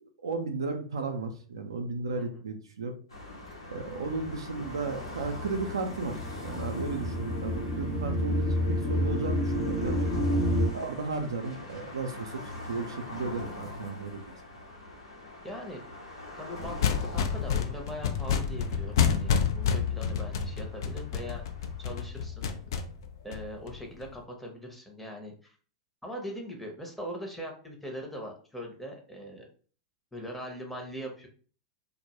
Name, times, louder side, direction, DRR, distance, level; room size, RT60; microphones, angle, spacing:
voice 1, 0.0-2.9 3.7-10.0 10.7-12.4 12.7-14.2, right 3 dB, 80° right, 5 dB, 0.4 m, -34 dB
sound 1, 3.1-22.1, left 2 dB, 90° left, 0.9 m, -44 dB
voice 2, 4.5-5.0 15.4-15.8 16.4-16.8 17.1-21.4 21.8-22.5 23.2-25.6 26.0-29.5 30.1-31.3, equal, 5° left, 0 dB, 0.7 m, -41 dB
sound 2, 4.6-10.7, equal, 40° left, 0.9 m, -29 dB
sound 3, 16.6-24.0, left 7 dB, 65° left, 0.3 m, -29 dB
2.1 x 2.1 x 2.9 m, 0.42 s
hypercardioid pair, 95°, 3 cm